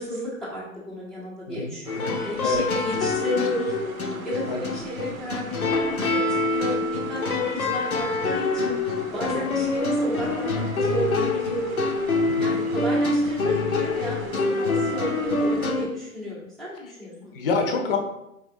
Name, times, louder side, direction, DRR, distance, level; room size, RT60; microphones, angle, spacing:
voice 1, 0.0-3.7 4.2-8.7 9.1-11.8 12.4-17.3, equal, ahead, -7 dB, 0.7 m, -32 dB
voice 2, 1.5-2.2 2.4-2.6 4.5-4.6 9.3-9.7 12.3-12.6 17.3-18.0, left 3 dB, 40° left, 3 dB, 0.7 m, -27 dB
sound 1, 1.8-15.7, right 5 dB, 70° right, 0.7 m, -43 dB
sound 2, 1.9-15.9, left 3 dB, 75° left, 0.9 m, -26 dB
4.7 x 3.6 x 2.6 m, 0.83 s
figure-of-eight pair, 120°, 43 cm